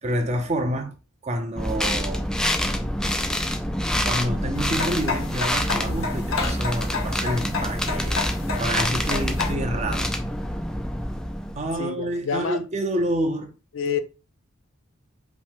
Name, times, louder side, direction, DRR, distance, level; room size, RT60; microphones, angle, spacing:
voice 1, 0.0-0.9 1.2-2.3 3.4-3.5 4.1-8.2 8.6-10.1 11.5-13.5, right 1 dB, 35° right, 0.7 m, -28 dB
sound 1, 1.6-11.8, equal, 5° left, 0.3 m, -26 dB
sound 2, 4.5-9.5, left 4 dB, 85° left, 1.1 m, -30 dB
voice 2, 11.8-12.6 13.7-14.0, left 6 dB, 70° left, 0.5 m, -27 dB
5.0 x 2.2 x 3.6 m
head